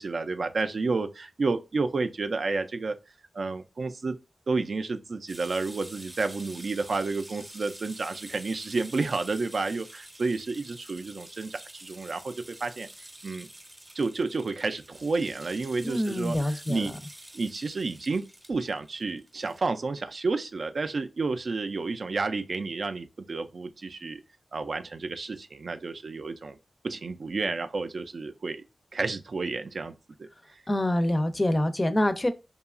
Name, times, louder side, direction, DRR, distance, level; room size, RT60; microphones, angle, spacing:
voice 1, 0.0-3.0 3.3-4.2 4.5-12.9 13.2-13.5 13.9-16.9 17.3-24.2 24.5-26.6 26.8-28.6 28.9-30.6, right 3 dB, 70° right, 0.3 m, -31 dB
sound 1, 5.3-19.6, right 1 dB, 25° right, 0.6 m, -48 dB
voice 2, 15.8-16.9 30.7-32.3, left 1 dB, 30° left, 0.4 m, -26 dB
2.8 x 2.3 x 2.3 m
cardioid pair, 45°, 0 cm